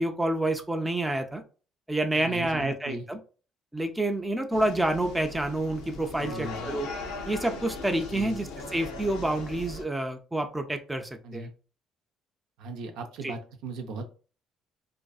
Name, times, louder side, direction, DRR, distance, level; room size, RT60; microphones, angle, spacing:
voice 1, 0.0-1.4 1.9-3.2 3.7-6.9 7.3-11.5 13.2-13.3, right 1 dB, 10° right, 5 dB, 0.4 m, -28 dB
voice 2, 2.1-3.1 6.2-6.7 8.1-8.3 11.2-11.5 12.6-14.0, right 3 dB, 80° right, 5 dB, 0.5 m, -38 dB
sound 1, 4.5-9.8, left 3 dB, 90° left, 0.5 m, -39 dB
2.5 x 2.3 x 2.3 m, 0.37 s
cardioid pair, 95°, 0 cm